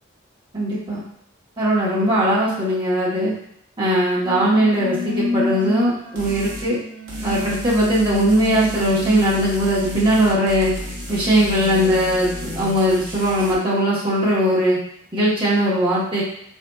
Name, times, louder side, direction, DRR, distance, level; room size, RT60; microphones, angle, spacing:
voice 1, 0.5-1.0 1.6-3.3 3.8-6.8 7.2-10.7 11.1-14.8 15.1-16.2, equal, 25° right, -9 dB, 1.0 m, -19 dB
sound 1, 4.2-12.8, left 1 dB, 45° right, 0.6 m, -30 dB
sound 2, 6.2-6.7 7.1-13.5, equal, 75° right, 0.8 m, -34 dB
4.1 x 2.7 x 2.2 m, 0.71 s
head